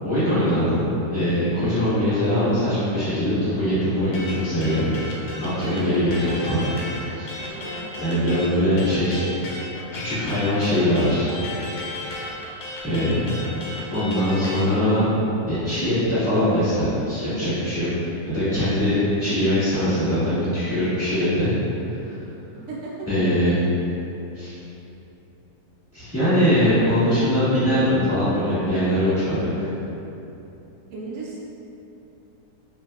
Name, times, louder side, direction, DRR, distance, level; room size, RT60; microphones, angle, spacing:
voice 1, 0.0-4.9 5.4-6.6 7.2-7.3 7.9-9.2 9.9-11.3 12.8-13.3 13.9-15.1 15.5-17.9 18.3-21.5 22.0-22.1 23.1-23.6 24.3-24.6 25.9-29.4, equal, 10° right, -15 dB, 1.2 m, -22 dB
sound 1, 4.1-14.7, left 2 dB, 75° left, 1.1 m, -34 dB
voice 2, 6.2-6.7 7.4-7.8 22.6-23.1 30.9-31.4, right 3 dB, 80° right, -5 dB, 0.7 m, -35 dB
3.9 x 2.4 x 2.3 m, 2.9 s
omnidirectional pair, 1.9 m